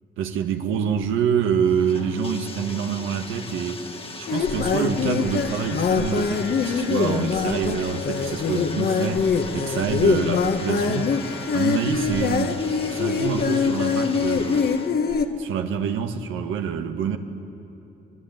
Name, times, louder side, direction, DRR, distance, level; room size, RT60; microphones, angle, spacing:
voice 1, 0.2-3.9 4.2-9.2 9.5-11.1 11.5-12.6 12.9-14.7 15.4-17.2, right 7 dB, 85° right, 6 dB, 1.5 m, -26 dB
Bathtub (filling or washing), 0.9-14.9, left 3 dB, 30° left, 1.6 m, -39 dB
sound 1, 4.3-15.3, left 5 dB, 50° left, 1.5 m, -24 dB
24.5 x 20.5 x 9.1 m, 3.0 s
cardioid pair, 90°, 20 cm